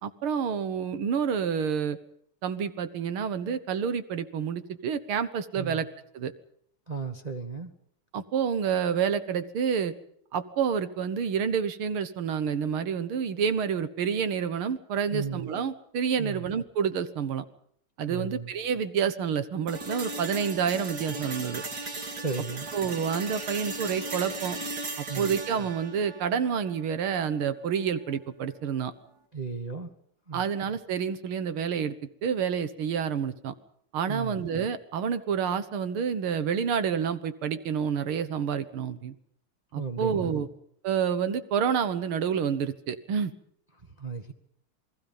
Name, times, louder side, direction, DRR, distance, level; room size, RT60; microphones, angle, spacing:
voice 1, 0.0-2.0 2.4-5.9 6.1-6.3 8.1-9.9 10.3-17.4 18.0-21.6 22.7-24.6 25.0-28.9 30.3-32.0 32.2-33.5 33.9-39.1 39.7-40.5 40.8-43.3, right 7 dB, 85° right, 13 dB, 2.1 m, -28 dB
voice 2, 5.5-5.9 6.9-7.7 15.1-15.5 16.2-16.5 18.1-18.5 22.2-22.7 25.1-25.4 29.3-29.9 30.3-30.5 34.1-34.4 39.7-40.5 44.0-44.3, right 4 dB, 20° right, 3 dB, 1.4 m, -35 dB
sound 1, 19.7-27.7, right 2 dB, 50° right, 3.2 m, -37 dB
28.5 x 20.0 x 5.4 m, 0.69 s
omnidirectional pair, 2.3 m